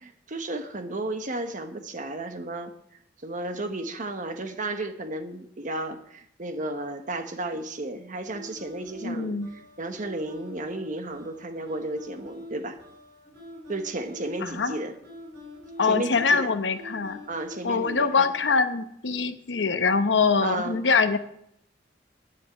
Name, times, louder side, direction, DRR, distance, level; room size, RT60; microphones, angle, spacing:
voice 1, 0.0-2.7 3.2-12.8 13.7-14.9 15.8-16.5 17.3-18.3 20.4-20.8, right 2 dB, 45° right, 7 dB, 1.2 m, -33 dB
sound 1, 8.3-18.4, left 1 dB, 65° right, 6.0 m, -45 dB
voice 2, 9.0-9.5 14.4-14.7 15.8-17.2 17.6-21.2, left 5 dB, 75° left, 10 dB, 0.9 m, -24 dB
9.5 x 7.5 x 7.9 m, 0.73 s
head